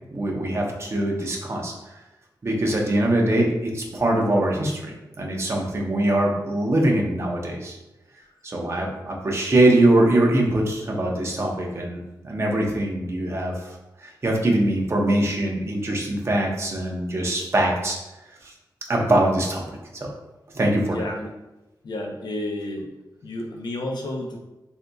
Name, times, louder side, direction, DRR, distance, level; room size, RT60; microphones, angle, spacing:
voice 1, 0.1-1.7 2.4-7.8 8.4-13.6 14.0-18.0 18.4-18.5 18.9-19.6 19.9-20.1 20.5-21.0, right 1 dB, 35° right, -1 dB, 0.8 m, -22 dB
voice 2, 20.9-21.3 21.8-22.9 23.2-24.4, left 1 dB, 70° left, 1 dB, 0.7 m, -31 dB
6.8 x 2.7 x 2.3 m, 1.0 s
wide cardioid pair, 140°, 8 cm